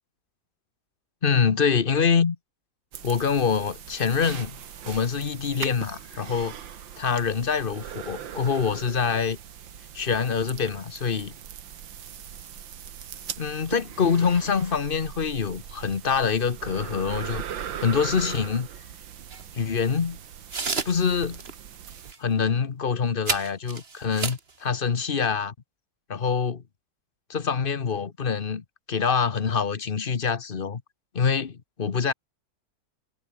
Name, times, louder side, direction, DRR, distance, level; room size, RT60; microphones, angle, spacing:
voice 1, 1.2-2.4 3.0-4.6 4.9-6.5 7.0-9.4 9.9-11.3 13.4-17.4 17.8-18.7 19.5-20.2 20.8-21.4 22.2-25.5 26.1-26.6 27.3-30.8 31.1-32.1, left 6 dB, 35° left, 1.0 m, -25 dB
sound 1, 2.9-22.1, right 9 dB, 80° right, 2.1 m, -40 dB
sound 2, 19.3-19.4 20.5-21.1 21.4-21.5 21.9-22.2 23.3-24.5, right 4 dB, 35° right, 2.1 m, -31 dB
omnidirectional pair, 2.0 m